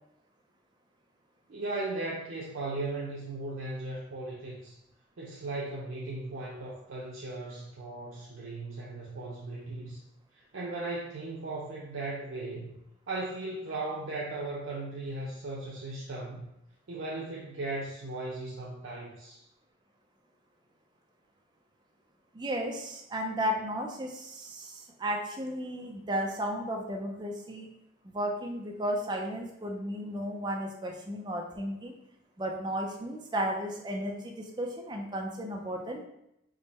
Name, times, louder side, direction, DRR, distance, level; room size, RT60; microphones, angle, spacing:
voice 1, 1.5-4.8 5.2-10.0 10.3-12.7 13.1-16.5 16.9-19.4, right 2 dB, 85° right, -5 dB, 0.6 m, -37 dB
voice 2, 22.3-27.7 28.0-31.9 32.4-36.0, equal, 20° right, 1 dB, 0.4 m, -34 dB
3.6 x 2.0 x 4.0 m, 0.82 s
head